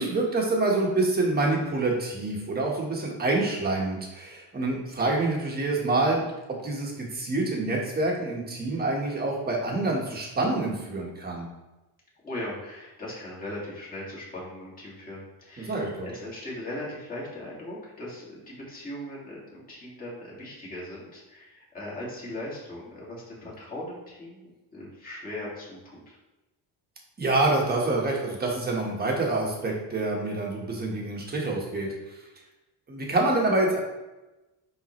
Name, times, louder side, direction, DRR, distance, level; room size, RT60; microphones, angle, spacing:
voice 1, 0.0-6.3 6.6-11.5 15.6-16.1 27.2-32.2 32.9-33.8, right 2 dB, 25° right, -1 dB, 1.4 m, -27 dB
voice 2, 12.2-26.2, left 1 dB, 20° left, -6 dB, 2.2 m, -39 dB
10.0 x 3.8 x 3.2 m, 1.0 s
cardioid pair, 165°, 41 cm